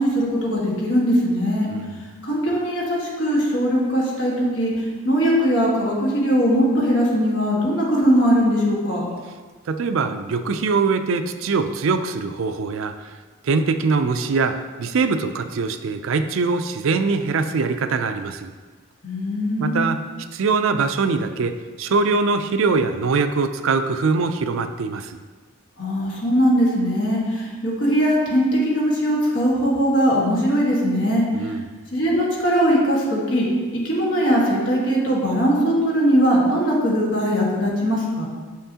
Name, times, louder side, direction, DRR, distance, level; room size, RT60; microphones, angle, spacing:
voice 1, 0.0-1.7 2.2-4.7 5.0-9.0 19.0-19.8 25.8-31.2 31.9-33.4 33.8-38.3, equal, 60° left, -4 dB, 1.6 m, -20 dB
voice 2, 1.7-2.0 9.7-12.9 13.4-18.5 19.6-20.0 20.3-21.5 21.8-25.2 31.3-31.6, right 4 dB, 75° right, 8 dB, 0.4 m, -22 dB
6.7 x 5.6 x 2.8 m, 1.4 s
head